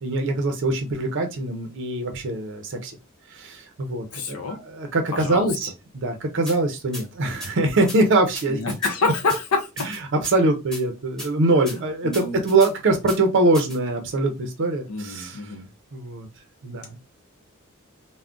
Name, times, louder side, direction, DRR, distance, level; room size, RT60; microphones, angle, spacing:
voice 1, 0.0-2.9 3.3-8.8 9.0-9.1 9.8-15.5 15.9-16.3 16.6-17.0, right 2 dB, 60° right, 5 dB, 0.5 m, -23 dB
voice 2, 4.1-4.6 5.1-5.5 8.5-9.7 12.0-12.4 14.9-15.7, left 3 dB, 90° left, 3 dB, 0.6 m, -26 dB
sound 1, 6.5-6.6 6.9-7.0 7.4-7.5 7.9-8.0 8.3-8.9 9.3-9.4 9.8-10.4 10.7-10.8 11.2-11.3 11.7-11.8 12.1-12.7 13.1-13.2 13.5-13.8, equal, 5° left, 1.1 m, -35 dB
3.6 x 2.1 x 2.3 m, 0.25 s
head